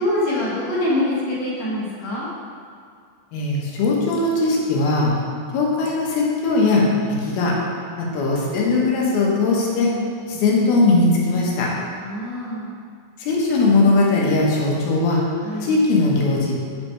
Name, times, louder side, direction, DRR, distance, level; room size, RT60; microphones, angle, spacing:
voice 1, 0.0-2.3 12.0-12.7 15.4-15.7, left 1 dB, 60° left, -7 dB, 2.3 m, -24 dB
voice 2, 3.3-5.2 5.5-7.6 8.0-9.9 10.3-11.7 13.2-15.2 15.6-16.5, left 3 dB, 85° left, -3 dB, 3.0 m, -19 dB
8.5 x 4.6 x 4.4 m, 2.2 s
omnidirectional pair, 4.2 m